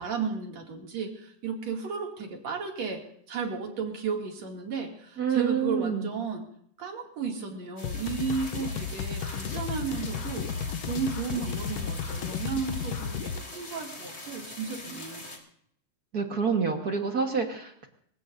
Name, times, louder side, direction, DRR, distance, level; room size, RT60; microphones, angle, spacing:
voice 1, 0.0-6.5 6.8-10.5 10.9-15.2, right 5 dB, 65° right, 1 dB, 3.7 m, -34 dB
voice 2, 5.2-6.1 16.1-17.9, right 6 dB, 45° right, 3 dB, 1.4 m, -27 dB
sound 1, 7.8-13.4, left 7 dB, 70° left, 1.8 m, -34 dB
sound 2, 7.8-15.4, left 2 dB, 20° left, 3.2 m, -43 dB
26.5 x 16.5 x 2.7 m, 0.66 s
omnidirectional pair, 3.4 m